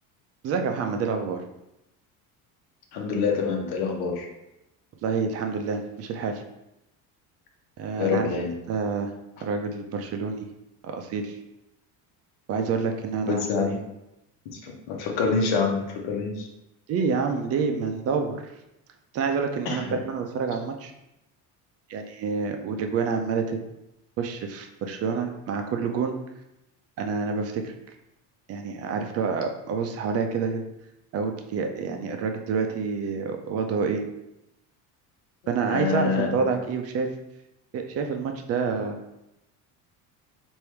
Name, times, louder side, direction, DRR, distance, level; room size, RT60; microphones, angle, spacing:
voice 1, 0.4-1.4 5.0-6.4 7.8-8.3 8.7-9.1 9.4-10.5 10.8-11.4 12.5-13.7 16.9-18.4 19.1-20.9 21.9-23.6 24.2-26.1 27.0-27.7 28.5-30.6 31.1-34.0 35.5-37.1 37.7-39.0, right 5 dB, 40° right, 5 dB, 0.5 m, -28 dB
voice 2, 2.9-4.3 8.0-8.5 13.3-13.8 14.4-16.5 19.6-20.0 35.7-36.4, left 5 dB, 85° left, 2 dB, 1.0 m, -26 dB
3.3 x 2.6 x 4.4 m, 0.88 s
cardioid pair, 145°, 37 cm